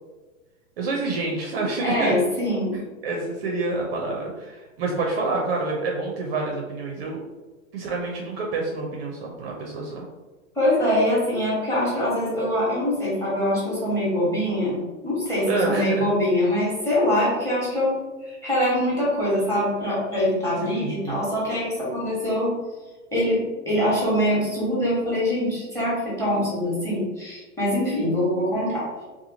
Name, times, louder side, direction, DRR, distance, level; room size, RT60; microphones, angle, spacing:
voice 1, 0.8-2.2 2.7-7.2 7.7-10.0 15.5-16.1 20.6-21.3, right 3 dB, 45° right, -1 dB, 0.6 m, -28 dB
voice 2, 1.8-2.7 10.5-22.5 23.1-28.9, left 1 dB, 5° left, -7 dB, 1.1 m, -24 dB
2.9 x 2.3 x 2.6 m, 1.2 s
hypercardioid pair, 115°, 41 cm